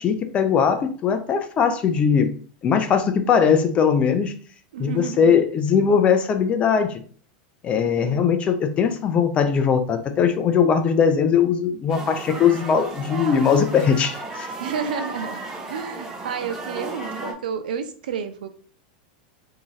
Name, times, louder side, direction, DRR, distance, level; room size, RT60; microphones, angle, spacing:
voice 1, 0.0-2.3 2.6-4.4 4.8-7.0 7.6-14.5, left 7 dB, 25° left, 8 dB, 0.5 m, -20 dB
voice 2, 4.7-5.3 7.8-8.3 14.6-15.4 15.7-18.5, right 7 dB, 85° right, 8 dB, 0.6 m, -31 dB
sound 1, 11.9-17.3, right 2 dB, 15° right, 0.8 m, -34 dB
3.5 x 2.8 x 3.1 m, 0.43 s
supercardioid pair, 140°, 5 cm